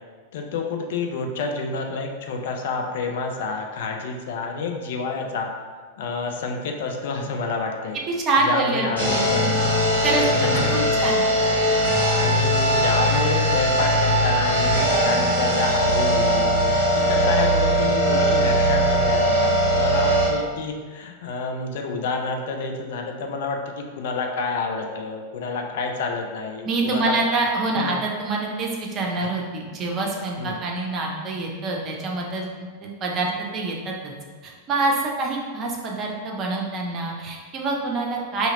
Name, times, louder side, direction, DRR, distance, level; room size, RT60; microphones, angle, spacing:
voice 1, 0.3-5.5 6.0-8.0 8.4-9.4 10.1-11.0 12.2-16.6 16.9-27.1 27.8-27.9 30.4-30.6, left 4 dB, 55° left, 3 dB, 0.4 m, -29 dB
voice 2, 8.1-9.3 10.0-10.5 11.0-11.3 26.6-32.5 32.8-34.1 34.4-38.5, right 3 dB, 30° right, -1 dB, 0.6 m, -26 dB
sound 1, 9.0-20.3, equal, 80° left, 1.5 m, -20 dB
2.9 x 2.8 x 3.7 m, 1.6 s
figure-of-eight pair, 90°, 0 cm